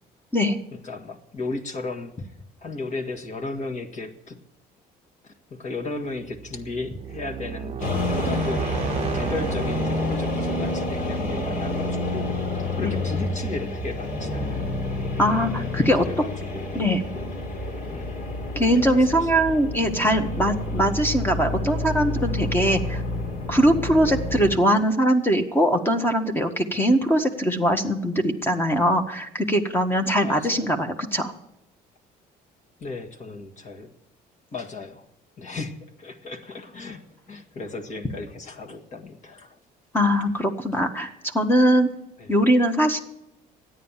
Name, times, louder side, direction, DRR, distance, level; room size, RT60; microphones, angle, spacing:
voice 1, 0.7-2.1 2.6-4.4 5.2-8.7 9.1-14.6 16.0-17.5 17.9-18.1 18.7-19.3 24.0-24.2 30.2-30.6 32.8-33.9 34.5-35.0 35.4-37.0 37.3-39.5 42.2-42.4, left 3 dB, 45° left, 4 dB, 1.8 m, -35 dB
sound 1, 6.2-15.0, right 9 dB, 35° right, 0.6 m, -35 dB
sound 2, 7.8-24.5, left 2 dB, 60° left, 3.0 m, -29 dB
voice 2, 15.2-16.0 16.7-17.0 18.5-23.0 23.5-31.3 39.9-41.9 42.3-43.0, equal, 15° left, 5 dB, 1.2 m, -21 dB
13.5 x 9.8 x 7.3 m, 0.86 s
cardioid pair, 110°, 17 cm